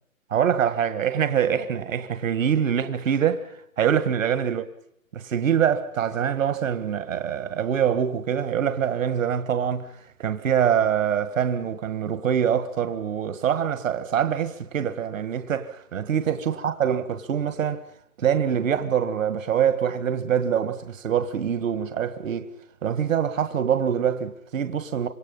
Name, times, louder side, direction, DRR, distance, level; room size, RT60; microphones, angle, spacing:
voice 1, 0.3-4.6 5.1-9.9 10.2-17.9 18.2-22.5 22.8-25.1, right 8 dB, 65° right, 1.8 m, -24 dB
28.0 x 26.0 x 5.5 m
hypercardioid pair, 150°, 43 cm